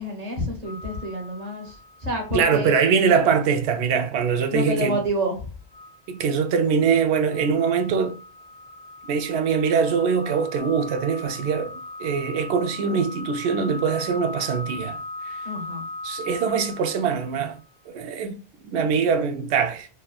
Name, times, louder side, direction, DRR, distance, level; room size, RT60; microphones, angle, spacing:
voice 1, 0.0-2.8 4.5-5.5 15.4-15.8, right 1 dB, 40° right, 1.1 m, -28 dB
sound 1, 0.6-2.5 3.0-3.1 5.7-17.6, left 2 dB, 50° left, 0.7 m, -39 dB
voice 2, 2.3-5.0 6.1-8.1 9.1-15.0 15.3-15.4 16.0-17.6 17.9-19.9, right 6 dB, 80° right, 0.8 m, -23 dB
3.2 x 2.2 x 2.3 m
omnidirectional pair, 1.1 m